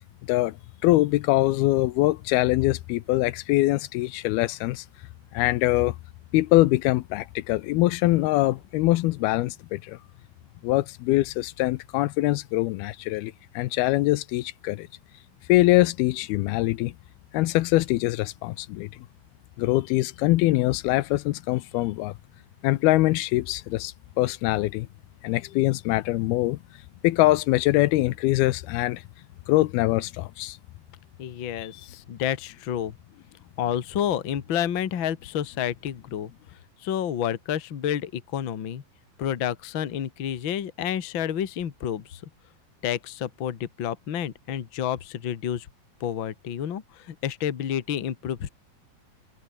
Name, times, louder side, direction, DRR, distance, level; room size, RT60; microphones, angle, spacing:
voice 1, 0.8-4.9 5.3-6.0 6.3-10.0 10.6-14.9 15.5-16.9 17.3-18.9 19.6-22.1 22.6-24.9 25.2-26.6 27.0-29.0 29.5-30.6, left 18 dB, 85° left, 2.7 m, -23 dB
voice 2, 31.2-32.9 33.6-36.3 36.8-38.8 39.2-42.2 42.8-45.7 46.0-48.5, left 10 dB, 50° left, 1.6 m, -29 dB
omnidirectional pair, 4.4 m